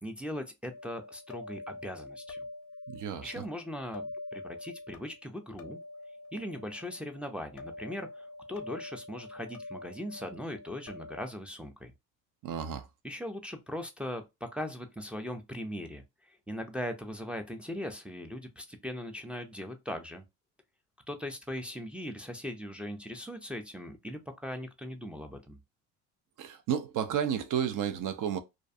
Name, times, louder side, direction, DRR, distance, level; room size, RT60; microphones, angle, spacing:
voice 1, 0.0-2.4 3.2-4.0 4.3-5.8 6.3-11.9 13.0-16.0 16.5-20.2 21.1-25.6, equal, 5° right, 0.3 m, -39 dB
sound 1, 0.7-11.2, left 2 dB, 40° left, 0.6 m, -45 dB
voice 2, 2.9-3.4 12.4-12.9 26.4-28.4, right 9 dB, 55° right, 0.5 m, -32 dB
2.5 x 2.2 x 2.6 m
supercardioid pair, 90°, 37 cm